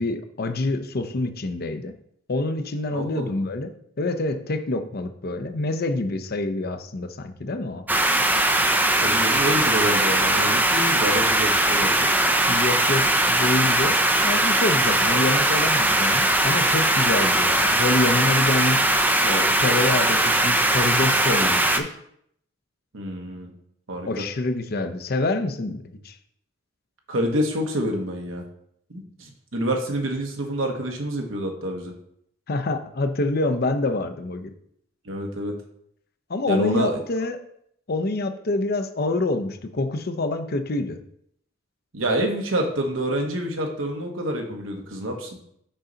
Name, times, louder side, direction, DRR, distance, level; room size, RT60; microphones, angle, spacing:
voice 1, 0.0-1.9 2.3-3.7 4.0-7.9 12.5-18.9 19.2-22.0 24.1-26.2 32.5-34.5 36.3-37.4 37.9-41.0, left 2 dB, 50° left, 8 dB, 0.6 m, -26 dB
voice 2, 2.9-3.4 9.0-12.2 22.9-23.5 23.9-24.1 27.1-28.4 28.9-31.9 35.0-35.5 36.5-37.0 41.9-45.3, right 1 dB, 75° right, 2 dB, 1.2 m, -27 dB
sound 1, 7.9-21.8, right 1 dB, 10° right, 0.5 m, -20 dB
6.3 x 5.4 x 3.9 m, 0.71 s
head